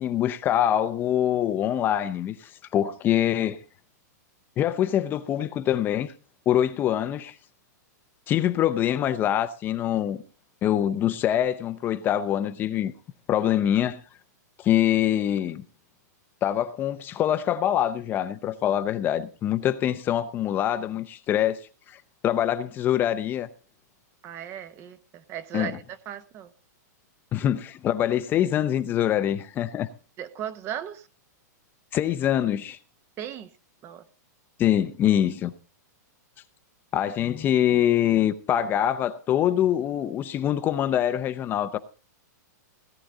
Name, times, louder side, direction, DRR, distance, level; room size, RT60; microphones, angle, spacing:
voice 1, 0.0-3.6 4.6-6.1 6.5-7.4 8.3-10.2 10.6-12.9 13.3-14.0 14.6-15.6 16.4-23.5 25.5-25.7 27.3-29.9 31.9-32.8 34.6-35.5 36.9-41.8, left 11 dB, 20° left, 0.6 m, -24 dB
voice 2, 24.2-26.5 30.2-31.1 33.2-33.5 33.8-34.0, right 10 dB, 25° right, 0.8 m, -36 dB
17.5 x 10.0 x 3.8 m
hypercardioid pair, 155°, 10 cm